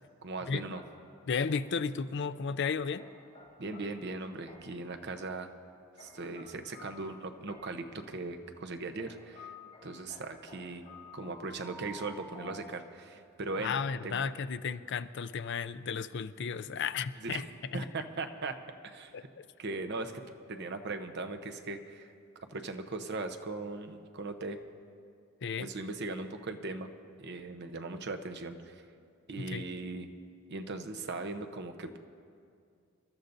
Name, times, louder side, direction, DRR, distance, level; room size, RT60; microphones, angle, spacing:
voice 1, 0.2-0.8 3.6-5.5 6.0-9.5 9.8-10.8 11.1-13.8 14.0-14.2 17.2-17.4 17.7-18.6 18.8-19.3 19.6-20.2 20.5-22.1 22.5-24.6 25.6-26.9 27.2-28.8 29.3-30.1 30.5-32.0, right 3 dB, 55° right, 7 dB, 0.8 m, -39 dB
sound 1, 0.7-1.9 3.0-4.9 6.0-7.9 9.0-13.3, left 2 dB, 35° left, 4.0 m, -52 dB
voice 2, 1.3-3.0 13.6-17.4 17.7-17.9 19.1-19.5 25.4-25.7 29.5-29.6, left 6 dB, 60° left, 12 dB, 0.5 m, -34 dB
27.5 x 13.0 x 2.7 m, 2.4 s
head